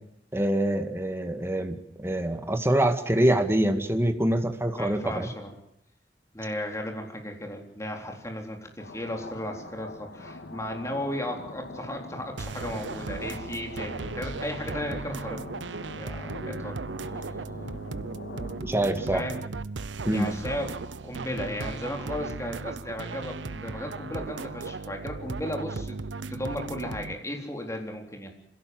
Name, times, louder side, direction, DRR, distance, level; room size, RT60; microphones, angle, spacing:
voice 1, 0.3-5.3 18.6-19.2 20.1-20.3, right 1 dB, 15° right, 6 dB, 2.1 m, -25 dB
voice 2, 4.7-5.5 6.3-15.7 16.0-16.8 19.1-19.4 20.1-26.0 26.3-28.3, left 1 dB, 15° left, 2 dB, 3.8 m, -35 dB
sound 1, 8.8-19.0, left 2 dB, 80° left, 1.9 m, -43 dB
sound 2, 12.4-27.1, right 3 dB, 90° right, 0.8 m, -36 dB
26.5 x 17.0 x 7.9 m, 0.80 s
head